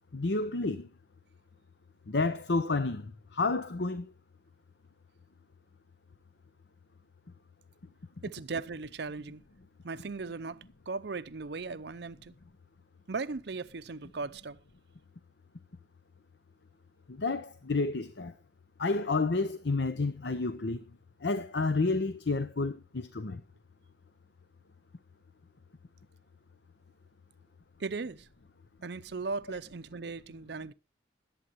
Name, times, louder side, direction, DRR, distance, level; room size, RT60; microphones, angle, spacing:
voice 1, 0.1-0.9 2.1-4.1 17.1-18.3 18.8-20.8 21.2-23.4, left 3 dB, 65° left, 0.7 m, -30 dB
voice 2, 8.2-9.4 9.8-12.3 13.1-14.6 27.8-28.3 28.8-30.7, right 4 dB, 60° right, 0.6 m, -37 dB
22.0 x 8.6 x 3.1 m
head